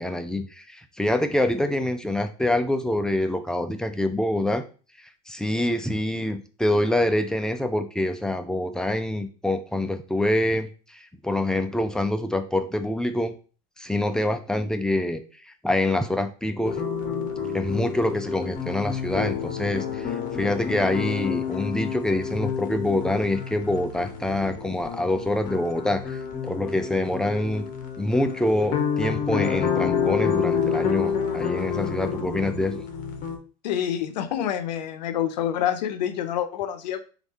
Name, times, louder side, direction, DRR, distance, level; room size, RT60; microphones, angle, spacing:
voice 1, 0.0-4.6 5.3-13.3 13.8-16.8 17.5-27.6 28.0-32.8, left 1 dB, 5° left, 7 dB, 0.4 m, -26 dB
sound 1, 16.6-33.4, left 7 dB, 40° left, 0.8 m, -29 dB
voice 2, 33.6-37.0, left 10 dB, 85° left, 11 dB, 0.5 m, -27 dB
3.4 x 2.4 x 4.1 m, 0.37 s
supercardioid pair, 105°, 21 cm